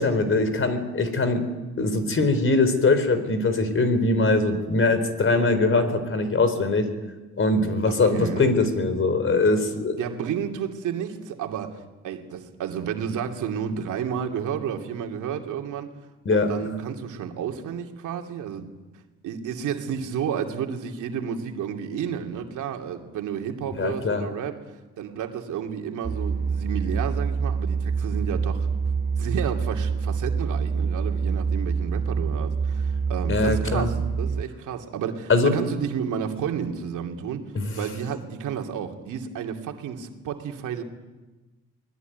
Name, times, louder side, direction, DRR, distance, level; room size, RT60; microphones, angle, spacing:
voice 1, 0.0-1.4 1.8-6.9 7.4-10.0 16.2-16.5 23.8-24.2 33.3-33.9 35.3-35.5 37.5-37.7, left 3 dB, 45° left, 10 dB, 4.2 m, -22 dB
voice 2, 7.9-8.5 10.0-15.9 16.3-18.7 19.2-24.6 25.0-28.7 29.2-37.4 37.8-40.8, right 8 dB, 80° right, 3 dB, 2.7 m, -31 dB
sound 1, 26.0-34.4, right 5 dB, 30° right, 0.9 m, -26 dB
24.5 x 20.5 x 9.4 m, 1.2 s
cardioid pair, 90°, 30 cm